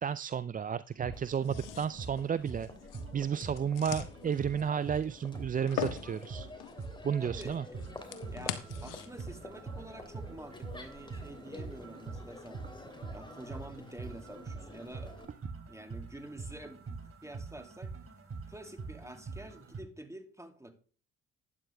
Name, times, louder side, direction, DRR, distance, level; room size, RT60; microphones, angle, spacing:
voice 1, 0.0-2.7 3.1-6.5 7.0-7.6, right 7 dB, 25° right, 17 dB, 0.4 m, -32 dB
sound 1, 0.9-19.8, right 4 dB, 40° right, 3.3 m, -44 dB
Crowd, 1.1-15.2, left 2 dB, 15° left, 2.9 m, -50 dB
sound 2, 1.4-9.4, left 10 dB, 70° left, 1.3 m, -43 dB
voice 2, 7.2-7.8 8.3-12.6 13.1-15.2 15.7-18.0 18.5-20.7, right 1 dB, 10° right, 6 dB, 2.6 m, -48 dB
12.0 x 9.9 x 3.4 m, 0.41 s
hypercardioid pair, 55°, 33 cm